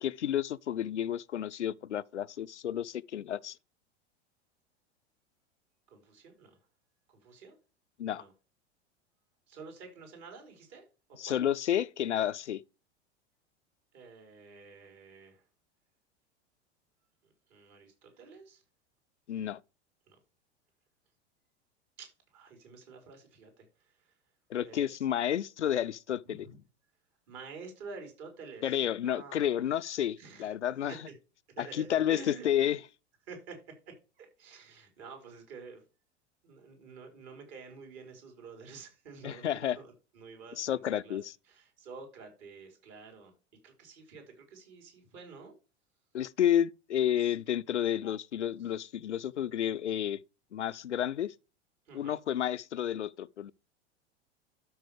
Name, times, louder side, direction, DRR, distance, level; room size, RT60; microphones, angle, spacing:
voice 1, 0.0-3.6 8.0-8.2 11.2-12.6 19.3-19.6 24.5-26.5 28.6-31.0 31.6-32.8 39.2-39.8 40.5-41.3 46.1-50.2 50.5-51.3 51.9-53.5, left 10 dB, 85° left, 0.5 m, -31 dB
voice 2, 5.9-6.6 7.2-7.6 8.1-8.3 9.5-11.4 13.9-15.4 17.5-18.6 20.1-20.2 22.0-23.7 24.6-25.0 26.4-26.6 27.3-29.6 30.2-30.5 31.6-32.4 33.3-33.6 33.9-35.8 36.4-41.2 41.5-43.3 43.6-44.2 44.5-45.5 47.2-47.3 51.9-52.2, right 4 dB, 50° right, 4.5 m, -49 dB
12.5 x 5.8 x 3.4 m
figure-of-eight pair, 85°, 34 cm